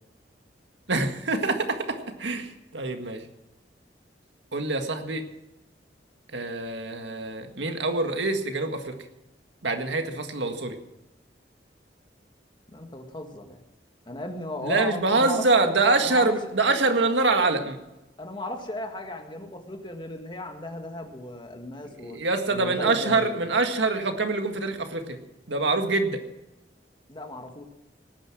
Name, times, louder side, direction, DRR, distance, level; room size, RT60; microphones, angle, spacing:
voice 1, 0.9-3.2 4.5-5.2 6.3-9.0 9.6-10.8 14.6-17.8 22.0-25.2 25.5-26.2, right 3 dB, 90° right, 6 dB, 1.8 m, -25 dB
voice 2, 12.7-13.6 14.1-15.5 16.0-16.4 18.2-22.2 22.5-23.3 27.1-27.7, left 1 dB, 25° left, 4 dB, 1.8 m, -36 dB
18.5 x 10.0 x 6.1 m, 0.96 s
head